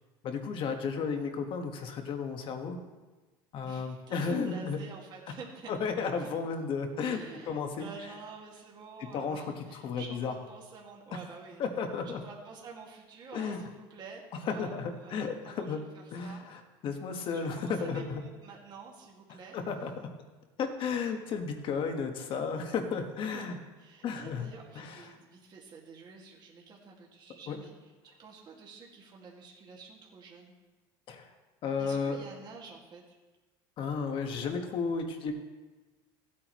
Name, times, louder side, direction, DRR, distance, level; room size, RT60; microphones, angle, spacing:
voice 1, 0.2-2.8 3.5-4.8 5.7-7.9 9.1-10.3 11.6-12.2 13.3-13.7 14.4-15.8 16.1-18.2 19.5-19.9 20.6-23.6 24.0-24.5 24.7-25.2 27.5-27.6 31.1-31.3 31.6-32.2 33.8-35.3, left 5 dB, 45° left, 5 dB, 1.5 m, -33 dB
voice 2, 3.6-5.7 6.2-6.3 7.0-11.6 12.1-14.2 14.5-14.7 15.0-15.8 16.2-16.5 17.3-19.6 23.3-27.7 28.0-30.5 31.8-33.2, right 5 dB, 40° right, -2 dB, 2.1 m, -49 dB
15.5 x 8.6 x 3.1 m, 1.2 s
supercardioid pair, 120°, 12 cm